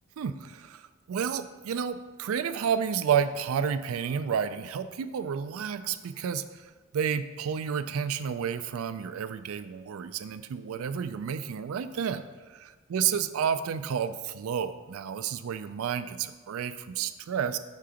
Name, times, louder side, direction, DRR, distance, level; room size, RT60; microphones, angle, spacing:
voice 1, 0.2-0.8 1.1-6.4 6.9-17.6, right 7 dB, 85° right, 12 dB, 0.3 m, -31 dB
5.7 x 3.7 x 5.0 m, 1.4 s
head